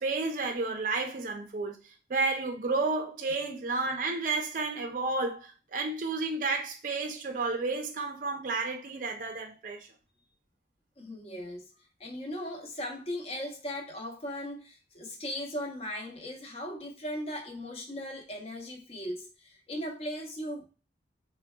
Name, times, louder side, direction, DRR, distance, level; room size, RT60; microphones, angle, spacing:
voice 1, 0.0-1.8 2.1-9.9, right 3 dB, 45° right, 0.4 m, -31 dB
voice 2, 11.0-11.7 12.0-20.7, equal, 35° left, 0.6 m, -38 dB
3.7 x 2.2 x 2.2 m
head